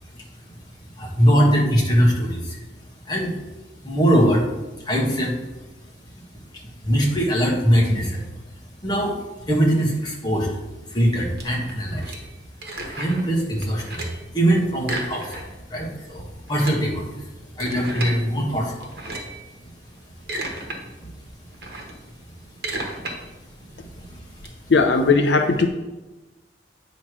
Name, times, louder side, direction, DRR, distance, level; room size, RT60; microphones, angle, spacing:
voice 1, 1.0-2.6 3.1-3.4 3.8-4.4 4.8-5.4 6.8-8.2 8.8-9.2 9.5-10.5 10.9-12.1 12.9-17.2 17.6-19.0 24.0-24.1, equal, 25° left, -2 dB, 1.4 m, -21 dB
sound 1, 11.4-13.3 13.6-14.3 14.8-15.7 16.0-16.1 16.4-18.2 18.8-19.4 20.0-20.8 21.1-24.5, right 2 dB, 60° right, 1.3 m, -34 dB
voice 2, 24.7-25.7, left 4 dB, 80° left, 5 dB, 0.6 m, -17 dB
8.5 x 3.2 x 6.0 m, 1.1 s
head